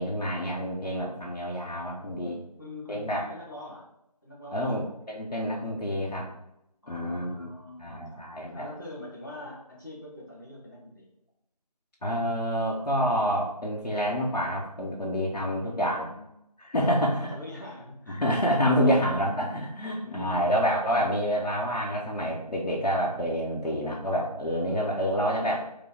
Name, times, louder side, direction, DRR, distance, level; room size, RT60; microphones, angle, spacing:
voice 1, 0.0-2.3 2.9-3.2 4.5-6.3 6.9-7.5 7.8-8.7 12.0-16.0 16.6-17.3 18.1-25.6, equal, 85° left, -4 dB, 1.0 m, -28 dB
voice 2, 2.1-3.9 4.2-5.1 6.8-11.1 15.3-16.3 16.9-18.3 18.8-19.0 20.0-20.5 24.6-25.5, left 1 dB, 30° left, -5 dB, 1.0 m, -44 dB
4.9 x 2.2 x 3.7 m, 0.83 s
figure-of-eight pair, 175°, 21 cm